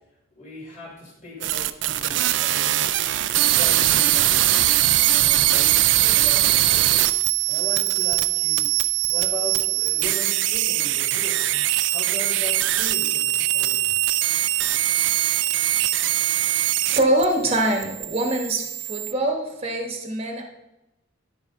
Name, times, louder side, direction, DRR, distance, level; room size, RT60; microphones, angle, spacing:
voice 1, 0.3-2.9 3.5-4.5 5.2-7.1 7.4-8.7 9.1-11.5 11.8-14.0, left 1 dB, 40° left, -5 dB, 3.4 m, -38 dB
sound 1, 1.4-17.2 17.5-19.1, right 14 dB, 60° right, 0.4 m, -21 dB
voice 2, 16.9-20.4, right 1 dB, 30° right, 3 dB, 1.2 m, -23 dB
12.5 x 5.2 x 3.7 m, 0.94 s
head